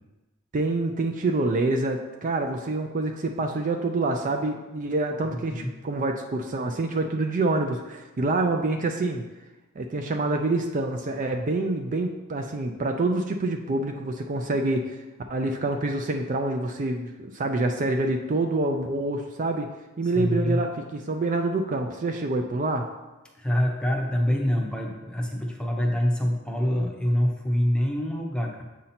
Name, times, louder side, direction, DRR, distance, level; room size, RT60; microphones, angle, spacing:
voice 1, 0.5-9.2 9.8-15.0 15.3-19.7 20.0-22.9, right 2 dB, 35° right, 4 dB, 0.4 m, -26 dB
voice 2, 5.2-5.7 20.1-20.6 23.3-28.6, equal, 5° left, 0 dB, 0.7 m, -25 dB
7.6 x 2.8 x 5.7 m, 1.1 s
head